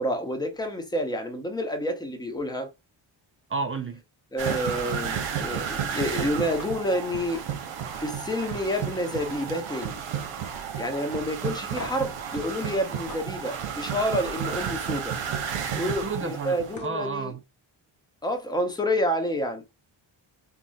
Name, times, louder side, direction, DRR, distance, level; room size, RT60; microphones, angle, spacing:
voice 1, 0.0-2.7 4.3-7.4 8.0-10.0 10.7-15.1 15.7-17.3 18.2-19.6, equal, 10° left, 0.8 m, -29 dB
voice 2, 3.5-4.0 15.7-17.4, right 4 dB, 30° right, 0.4 m, -32 dB
sound 1, 4.4-16.8, right 8 dB, 80° right, 0.9 m, -32 dB
sound 2, 6.6-6.7 7.1-7.4 7.8-8.0 8.4-9.6 9.9-10.3 10.7-10.8 11.8-12.1 13.1-13.2 14.4-14.7 16.3-16.4 16.7-17.0, left 3 dB, 40° left, 0.7 m, -42 dB
3.6 x 2.1 x 2.6 m
cardioid pair, 85°, 48 cm